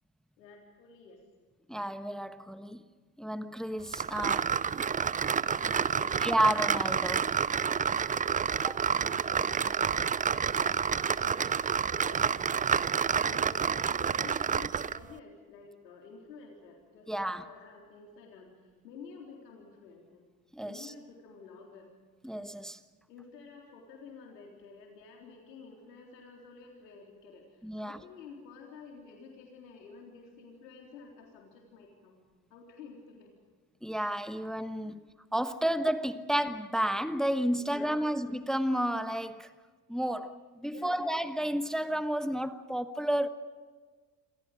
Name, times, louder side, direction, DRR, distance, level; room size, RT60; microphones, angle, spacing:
voice 1, 0.4-1.2 5.4-6.2 8.9-10.1 11.0-20.2 20.6-21.9 23.1-32.2 32.5-33.4 34.3-34.5 34.8-35.0 37.6-38.2 40.1-40.2 40.6-41.1, left 4 dB, 75° left, 3.9 m, -51 dB
voice 2, 1.7-2.8 3.2-4.5 6.2-7.3 8.6-8.8 17.1-17.4 20.5-20.9 22.2-22.8 27.6-28.0 33.8-35.0 35.3-39.5 39.9-40.3 40.6-43.3, right 1 dB, ahead, 1.3 m, -31 dB
sound 1, 3.9-15.0, right 7 dB, 15° right, 0.6 m, -29 dB
27.5 x 27.0 x 5.2 m
figure-of-eight pair, 65°, 50 cm